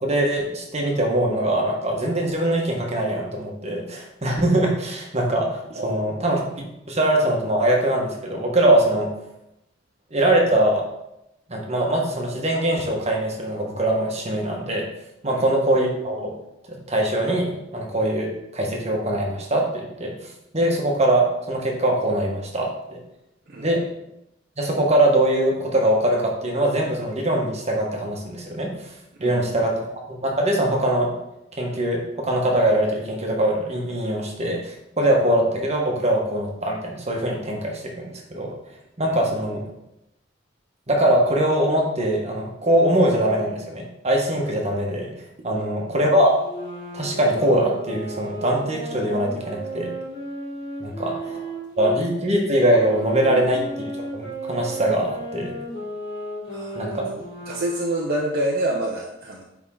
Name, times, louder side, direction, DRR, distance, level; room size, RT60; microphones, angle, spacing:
voice 1, 0.0-6.4 6.9-9.1 10.1-10.9 11.5-14.9 15.2-16.3 16.9-20.1 20.5-23.0 23.6-23.8 24.6-28.7 29.2-29.8 30.1-31.1 31.6-38.5 39.0-39.6 40.9-45.1 45.4-46.4 46.9-49.9 50.8-51.1 51.8-53.7 54.1-55.6 56.7-57.2, right 1 dB, 35° right, 0 dB, 1.3 m, -22 dB
voice 2, 5.7-6.1 15.3-15.4 23.5-23.7 29.1-29.4 39.1-39.2 45.5-45.9 51.0-51.5 53.3-53.4 56.5-56.8 57.5-59.4, right 1 dB, 50° right, -2 dB, 0.8 m, -28 dB
sound 1, 46.3-52.0 52.7-58.1, right 1 dB, 65° left, 1.9 m, -34 dB
9.0 x 3.7 x 3.8 m, 0.86 s
head